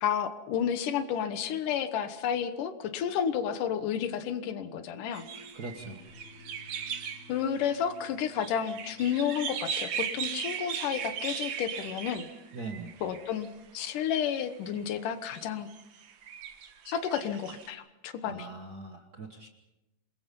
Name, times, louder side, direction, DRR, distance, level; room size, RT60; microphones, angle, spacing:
voice 1, 0.0-5.3 7.3-12.3 13.0-13.5 13.7-15.7 16.9-18.5, left 8 dB, 90° left, 10 dB, 2.8 m, -31 dB
sound 1, 3.7-11.8, left 2 dB, 70° left, 6.2 m, -55 dB
sound 2, 5.1-13.5 14.2-14.8 15.3-17.7, right 7 dB, 65° right, 2.9 m, -38 dB
voice 2, 5.5-6.0 12.5-12.9 18.3-19.5, right 3 dB, 45° right, 4 dB, 1.4 m, -41 dB
27.5 x 21.0 x 5.4 m, 0.98 s
omnidirectional pair, 3.6 m